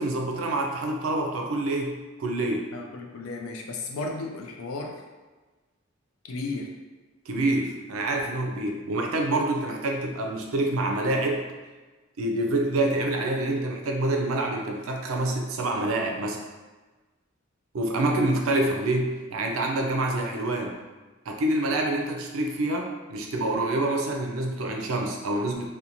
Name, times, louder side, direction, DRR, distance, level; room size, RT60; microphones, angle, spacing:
voice 1, 0.0-2.7 7.3-11.4 12.2-16.4 17.7-20.8 21.3-25.7, right 2 dB, 80° right, 2 dB, 0.4 m, -27 dB
voice 2, 2.7-5.0 6.3-6.7, left 3 dB, 90° left, 2 dB, 0.4 m, -34 dB
2.5 x 2.2 x 2.9 m, 1.2 s
head